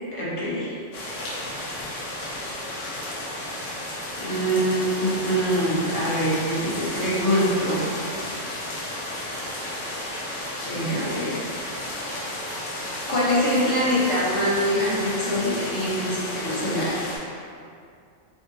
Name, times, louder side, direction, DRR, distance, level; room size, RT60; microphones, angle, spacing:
voice 1, 0.1-0.7 4.2-7.8 10.6-11.3 13.1-17.0, equal, 30° left, -8 dB, 0.8 m, -24 dB
sound 1, 0.9-17.2, left 1 dB, 90° left, 1.1 m, -33 dB
3.5 x 2.8 x 2.7 m, 2.4 s
omnidirectional pair, 1.2 m